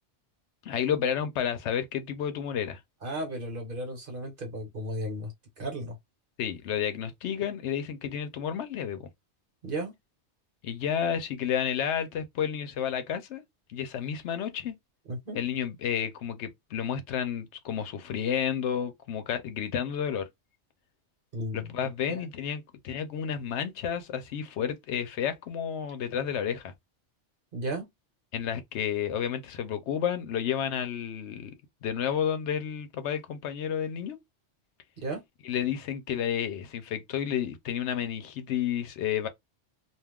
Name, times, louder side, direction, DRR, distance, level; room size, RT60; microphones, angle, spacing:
voice 1, 0.6-2.8 6.4-9.1 10.6-13.4 13.7-14.8 15.4-20.3 21.5-26.7 28.3-31.5 31.8-34.2 35.4-39.3, left 8 dB, 80° left, 0.9 m, -31 dB
voice 2, 3.0-6.0 9.6-9.9 15.1-15.4 21.3-22.2 27.5-27.9 35.0-35.2, right 1 dB, 50° right, 1.2 m, -35 dB
2.5 x 2.3 x 3.4 m
omnidirectional pair, 1.2 m